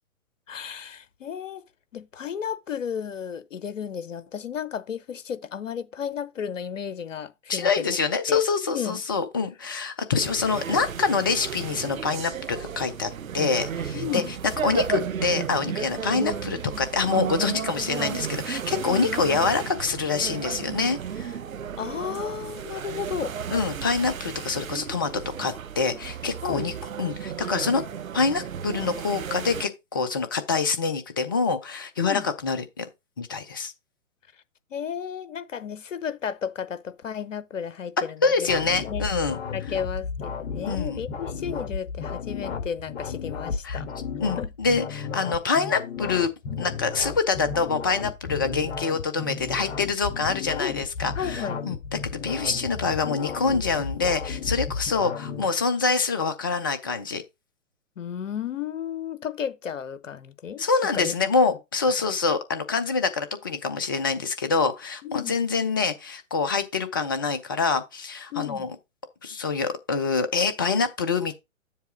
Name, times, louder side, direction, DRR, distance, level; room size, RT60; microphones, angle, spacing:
voice 1, 0.5-1.6 1.9-8.0 8.3-8.4 8.7-9.0 13.9-14.3 21.8-23.3 26.4-26.7 32.0-32.2 34.7-38.5 38.9-39.1 39.5-43.9 44.4-44.5 50.6-50.8 51.1-51.6 58.0-60.7 60.9-61.3 65.0-65.4 68.3-68.7, left 8 dB, 70° left, 1.0 m, -33 dB
voice 2, 7.5-14.2 14.6-21.4 23.5-26.7 27.0-27.8 28.1-32.9 33.2-33.7 38.2-39.4 40.7-41.0 43.6-43.8 44.2-46.3 46.6-57.2 60.6-68.7 69.2-71.3, left 4 dB, 20° left, 0.4 m, -26 dB
sound 1, 10.2-29.6, right 8 dB, 80° right, 0.8 m, -34 dB
sound 2, 38.5-55.5, left 5 dB, 50° left, 1.5 m, -33 dB
7.4 x 3.6 x 5.9 m
figure-of-eight pair, 130°, 40 cm